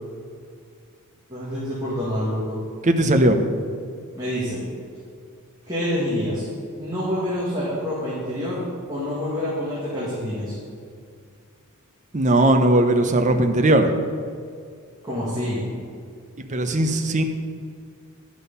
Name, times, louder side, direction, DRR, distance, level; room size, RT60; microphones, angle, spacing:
voice 1, 1.3-2.6 4.2-4.6 5.7-6.5 6.8-8.6 8.9-10.5 15.0-15.7, equal, 15° right, -9 dB, 2.0 m, -27 dB
voice 2, 2.8-3.4 12.1-13.9 16.5-17.2, right 1 dB, 35° right, 6 dB, 0.7 m, -18 dB
11.0 x 6.3 x 5.5 m, 2.2 s
head